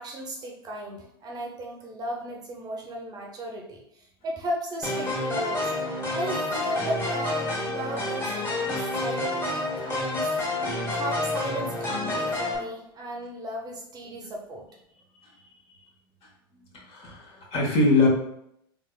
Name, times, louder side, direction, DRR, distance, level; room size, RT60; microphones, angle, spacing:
voice 1, 0.0-5.7 6.1-10.3 10.9-14.7, right 1 dB, 30° right, 0 dB, 0.7 m, -35 dB
sound 1, 4.8-12.6, left 2 dB, 20° left, 1.4 m, -29 dB
voice 2, 16.7-18.1, left 2 dB, 45° left, -2 dB, 1.4 m, -23 dB
3.4 x 3.3 x 2.4 m, 0.76 s
hypercardioid pair, 90°, 13 cm